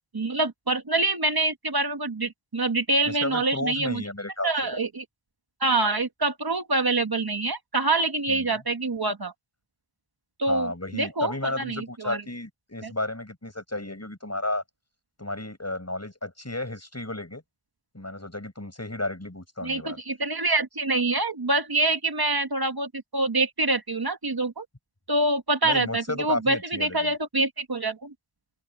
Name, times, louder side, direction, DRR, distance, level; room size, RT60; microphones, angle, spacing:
voice 1, 0.1-4.0 4.4-5.0 5.6-9.3 10.4-12.2 12.8-12.9 19.6-24.6 25.1-28.1, right 2 dB, 55° right, 1.5 m, -26 dB
voice 2, 3.0-4.8 8.3-8.6 10.5-14.6 15.2-17.4 17.9-20.0 25.6-27.1, left 2 dB, 35° left, 7.4 m, -33 dB
open air
wide cardioid pair, 45°, 45 cm